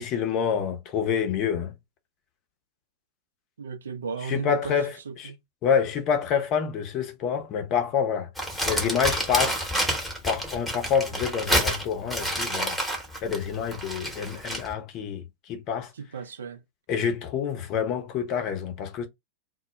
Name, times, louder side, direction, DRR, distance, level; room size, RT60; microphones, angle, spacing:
voice 1, 0.0-1.7 4.2-5.3 5.6-8.3 8.7-9.7 10.2-12.8 13.2-15.9 16.9-19.1, left 7 dB, 40° left, 0.6 m, -27 dB
voice 2, 3.6-4.7 5.1-5.4 16.0-16.6, right 5 dB, 70° right, 0.4 m, -34 dB
Crumpling crinkling, 8.4-14.7, equal, ahead, 0.9 m, -28 dB
2.1 x 2.0 x 3.0 m
figure-of-eight pair, 90°, 0 cm